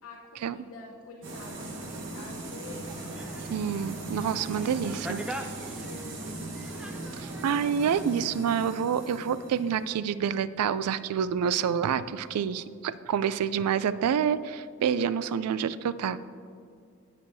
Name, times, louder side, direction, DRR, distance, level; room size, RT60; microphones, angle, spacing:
voice 1, 0.0-3.6 4.4-5.0 5.7-6.7, left 2 dB, 80° left, -3 dB, 0.9 m, -47 dB
sound 1, 1.2-10.8, right 2 dB, 55° right, 1.3 m, -39 dB
sound 2, 2.9-8.0, equal, 5° right, 0.4 m, -43 dB
voice 2, 3.5-5.5 7.2-16.2, right 7 dB, 90° right, 15 dB, 0.3 m, -28 dB
17.5 x 6.3 x 2.7 m, 2.3 s
head